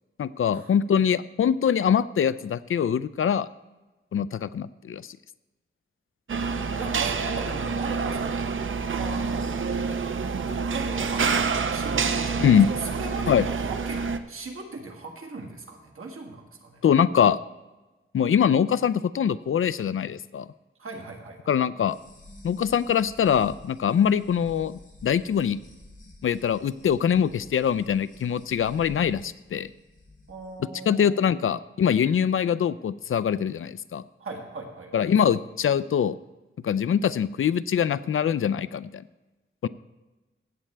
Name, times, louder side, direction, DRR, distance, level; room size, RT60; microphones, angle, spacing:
voice 1, 0.2-3.5 4.1-5.0 12.4-12.7 13.3-13.5 16.8-17.4 18.1-20.5 21.5-22.0 22.4-25.6 26.2-29.7 30.9-34.0 34.9-36.2 36.6-39.0 39.6-39.7, left 8 dB, 75° left, 17 dB, 0.4 m, -23 dB
sound 1, 6.3-14.2, right 5 dB, 70° right, 0.6 m, -27 dB
voice 2, 6.7-8.5 9.0-9.5 9.8-12.5 12.8-14.0 14.3-16.8 20.8-21.5 30.3-31.3 34.2-35.1, right 3 dB, 90° right, 2 dB, 1.8 m, -38 dB
sound 2, 21.9-30.5, left 2 dB, 40° left, 2.8 m, -50 dB
16.0 x 8.5 x 3.3 m, 1.1 s
wide cardioid pair, 115°, 21 cm